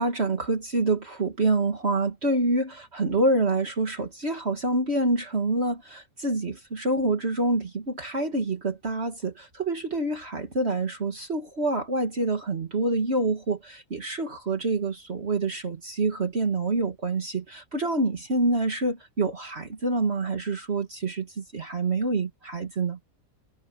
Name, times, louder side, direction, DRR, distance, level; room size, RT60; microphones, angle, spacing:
voice 1, 0.0-23.0, right 2 dB, 45° right, 2.2 m, -27 dB
omnidirectional pair, 1.5 m